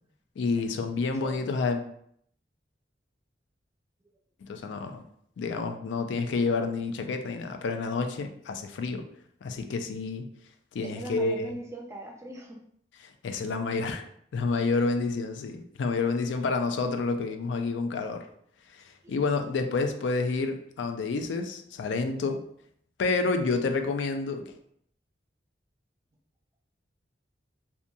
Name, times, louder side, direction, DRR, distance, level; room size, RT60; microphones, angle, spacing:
voice 1, 0.4-1.8 4.4-5.0 5.4-9.0 9.4-10.3 10.7-11.5 13.2-14.0 14.3-18.3 18.7-22.4 23.0-24.4, left 4 dB, 70° left, 6 dB, 0.3 m, -29 dB
voice 2, 10.8-12.6 19.0-19.2, right 1 dB, 15° right, 1 dB, 0.4 m, -40 dB
2.8 x 2.2 x 2.5 m, 0.68 s
head